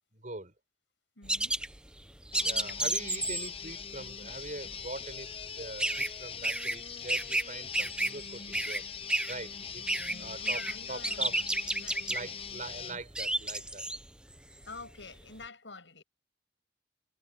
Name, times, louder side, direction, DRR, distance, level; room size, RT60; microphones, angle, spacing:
voice 1, 0.1-0.5 2.4-8.9 9.3-9.9 10.2-10.6 10.9-11.4 12.1-13.8, right 2 dB, 45° right, 5.5 m, -43 dB
voice 2, 1.2-1.6 10.1-11.5 11.8-12.4 14.6-16.0, left 3 dB, 85° left, 7.0 m, -48 dB
sound 1, 1.2-7.5 7.7-15.0, right 1 dB, 5° right, 0.9 m, -32 dB
sound 2, 2.3-13.0, left 7 dB, 30° left, 1.0 m, -42 dB
head